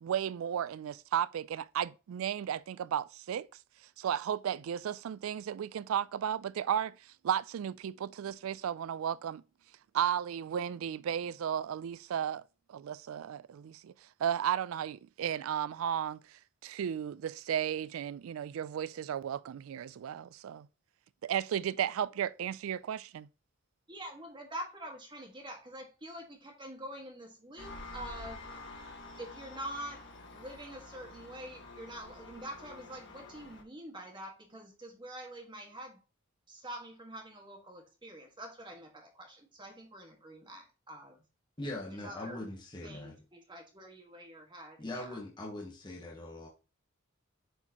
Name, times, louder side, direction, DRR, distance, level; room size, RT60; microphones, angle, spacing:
voice 1, 0.0-3.5 4.0-6.9 7.2-9.4 9.9-12.4 12.7-13.9 14.2-16.2 16.6-20.7 21.2-23.3, right 9 dB, 75° right, 0.3 m, -34 dB
voice 2, 23.9-28.4 29.2-36.0 36.5-41.2 41.9-42.5 42.8-45.2 45.9-46.0, right 1 dB, 25° right, 1.7 m, -46 dB
Engine, 27.6-33.6, left 2 dB, 60° left, 1.5 m, -48 dB
voice 3, 41.6-43.2 44.8-46.5, left 1 dB, 20° left, 1.1 m, -41 dB
7.9 x 4.5 x 2.9 m
head